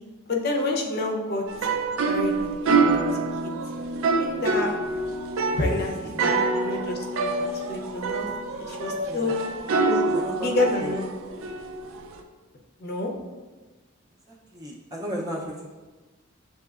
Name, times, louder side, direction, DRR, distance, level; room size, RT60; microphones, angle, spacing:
voice 1, 0.3-1.4 2.0-3.0 3.4-3.5 4.2-4.7 5.6-5.9 6.2-6.3 6.6-8.3 8.5-9.4 9.9-10.0 10.4-11.2 12.8-13.1, left 2 dB, 50° left, 1 dB, 0.6 m, -28 dB
sound 1, 1.5-12.2, right 3 dB, 75° right, 0.4 m, -26 dB
voice 2, 5.6-6.4 9.1-9.3 10.1-10.5 10.8-11.0 14.3-15.7, equal, 20° right, -3 dB, 0.5 m, -36 dB
7.5 x 2.8 x 2.4 m, 1.2 s
head